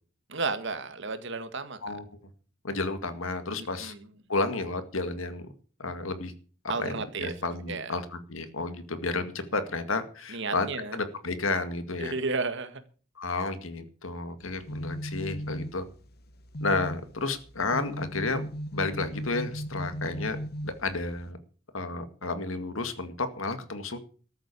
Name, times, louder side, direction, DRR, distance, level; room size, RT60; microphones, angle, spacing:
voice 1, 0.3-2.0 3.6-4.1 6.7-7.3 7.7-7.9 10.3-11.0 12.0-12.8, right 3 dB, 65° right, 9 dB, 1.8 m, -33 dB
voice 2, 2.6-3.9 4.3-5.5 5.8-6.3 6.8-10.7 10.9-12.1 13.2-15.8 16.6-18.5 18.7-20.4 20.6-21.4 21.7-24.0, left 3 dB, 80° left, 9 dB, 2.0 m, -31 dB
sound 1, 14.4-21.3, equal, 50° left, 1.2 m, -37 dB
14.0 x 7.9 x 8.4 m, 0.40 s
head